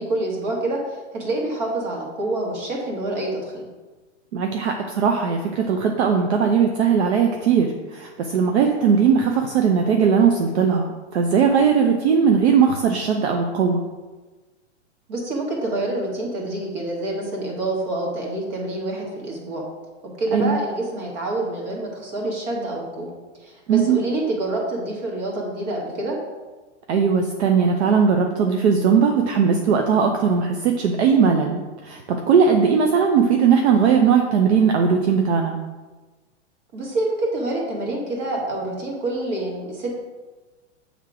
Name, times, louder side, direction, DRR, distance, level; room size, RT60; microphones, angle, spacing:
voice 1, 0.0-3.6 15.1-19.6 20.2-23.1 23.4-26.2 36.7-39.9, right 2 dB, 40° right, -2 dB, 1.7 m, -27 dB
voice 2, 4.3-13.8 20.3-20.6 23.7-24.0 26.9-32.0 32.3-35.6, right 6 dB, 65° right, 3 dB, 0.7 m, -19 dB
7.3 x 3.6 x 4.9 m, 1.3 s
supercardioid pair, 165°, 36 cm